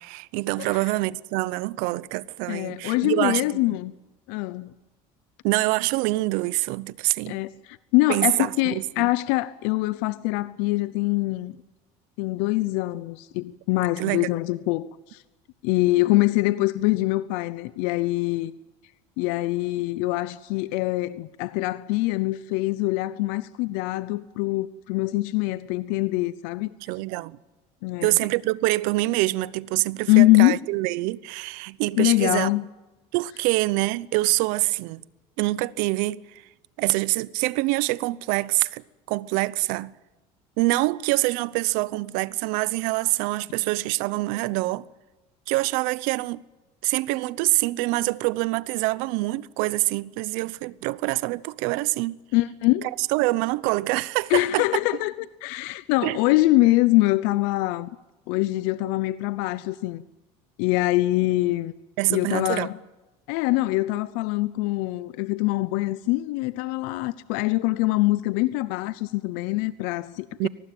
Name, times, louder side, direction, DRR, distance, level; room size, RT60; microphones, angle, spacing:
voice 1, 0.0-3.8 5.4-7.4 8.1-9.1 14.0-14.3 26.9-27.4 28.0-32.5 33.1-35.0 35.4-36.4 36.8-39.9 40.6-44.8 45.5-46.4 46.8-52.2 53.1-54.7 56.0-56.2 62.0-62.7 70.4-70.5, right 20 dB, 75° right, 0.8 m, -25 dB
voice 2, 2.5-3.9 4.3-4.7 7.3-11.6 12.2-15.2 15.6-18.5 19.2-26.7 27.8-28.1 30.1-30.6 32.0-32.6 52.3-52.9 54.3-55.1 55.4-57.9 58.3-60.0 60.6-61.7 62.1-62.8 63.3-70.5, left 19 dB, 80° left, 0.7 m, -24 dB
23.5 x 19.0 x 9.1 m
cardioid pair, 150°, 14 cm